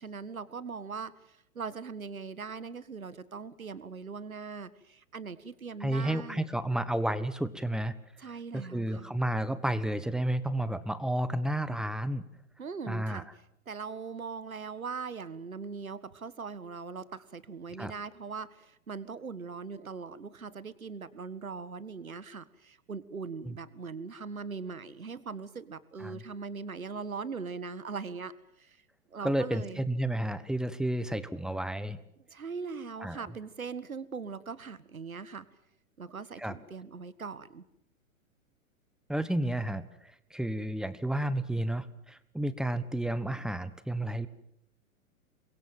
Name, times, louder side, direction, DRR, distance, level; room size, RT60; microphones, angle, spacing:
voice 1, 0.0-6.5 8.2-9.1 12.6-13.3 13.7-28.3 28.6-28.8 29.1-29.9 32.3-35.5 36.0-37.6, right 5 dB, 75° right, 16 dB, 1.8 m, -40 dB
voice 2, 5.8-8.0 8.5-12.2 12.9-13.2 17.8-17.9 23.5-23.6 26.0-26.2 29.2-32.0 33.0-33.2 36.4-36.6 39.1-39.8 40.3-44.3, right 1 dB, ahead, 14 dB, 1.2 m, -31 dB
28.0 x 23.0 x 7.5 m, 0.77 s
figure-of-eight pair, 105°, 42 cm